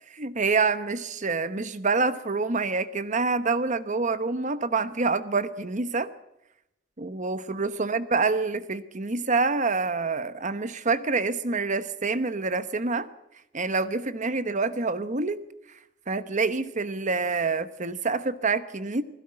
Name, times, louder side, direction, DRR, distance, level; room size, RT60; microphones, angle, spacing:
voice 1, 0.1-6.1 7.0-13.1 13.5-15.4 16.1-19.0, right 4 dB, 35° right, 12 dB, 0.9 m, -27 dB
20.5 x 16.5 x 8.7 m, 0.85 s
head